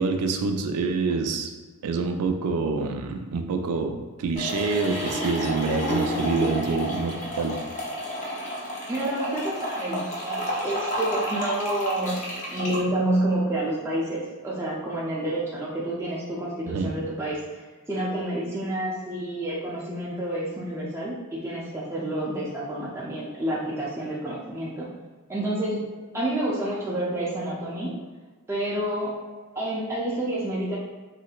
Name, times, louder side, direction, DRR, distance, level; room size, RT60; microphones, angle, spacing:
voice 1, 0.0-1.5 1.8-7.6 16.7-16.9, right 4 dB, 85° right, 5 dB, 0.4 m, -26 dB
sound 1, 4.3-12.8, equal, 35° left, 0.6 m, -31 dB
voice 2, 8.9-17.6 17.9-24.9 25.3-25.8 26.1-27.9 28.5-29.2 29.5-30.8, right 1 dB, 10° right, -6 dB, 0.5 m, -29 dB
3.3 x 3.0 x 2.3 m, 1.3 s
head